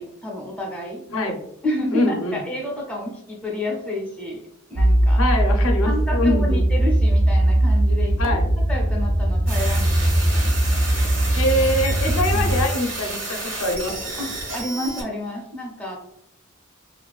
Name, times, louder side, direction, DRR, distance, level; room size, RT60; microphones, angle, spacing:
voice 1, 0.0-1.0 1.6-4.4 4.7-5.2 5.8-10.6 12.3-12.5 14.2-16.0, left 1 dB, 5° left, -2 dB, 0.5 m, -30 dB
voice 2, 1.9-2.4 5.2-6.6 8.2-8.5 11.4-13.9, left 1 dB, 70° left, 3 dB, 0.5 m, -23 dB
sound 1, 4.8-12.6, right 1 dB, 60° right, 0.5 m, -20 dB
sound 2, 9.5-15.0, right 2 dB, 85° right, 0.9 m, -31 dB
2.4 x 2.3 x 2.3 m, 0.75 s
head